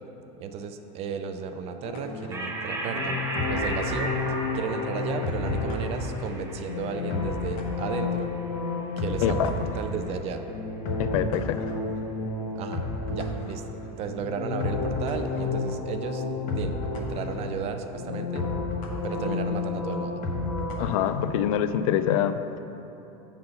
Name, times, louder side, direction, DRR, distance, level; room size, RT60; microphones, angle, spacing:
voice 1, 0.4-3.2 3.5-4.1 4.5-8.3 9.0-10.4 12.6-13.6 13.9-16.2 16.5-18.5 19.0-20.2, right 6 dB, 35° right, 7 dB, 0.4 m, -34 dB
sound 1, 1.8-21.5, left 3 dB, 45° left, 1.0 m, -31 dB
sound 2, 2.3-9.2, right 1 dB, 15° right, 0.8 m, -36 dB
voice 2, 11.0-11.6 20.8-22.6, left 10 dB, 80° left, 11 dB, 0.4 m, -25 dB
7.9 x 4.0 x 5.7 m, 3.0 s
supercardioid pair, 140°, 17 cm